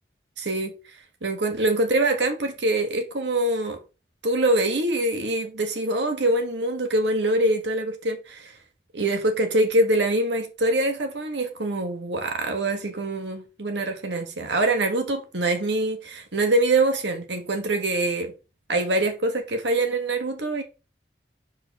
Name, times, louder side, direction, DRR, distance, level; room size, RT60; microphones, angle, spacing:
voice 1, 0.4-0.7 1.2-3.8 4.2-8.5 8.9-18.3 18.7-20.6, right 2 dB, 80° right, 1.5 m, -24 dB
4.9 x 4.4 x 5.9 m
head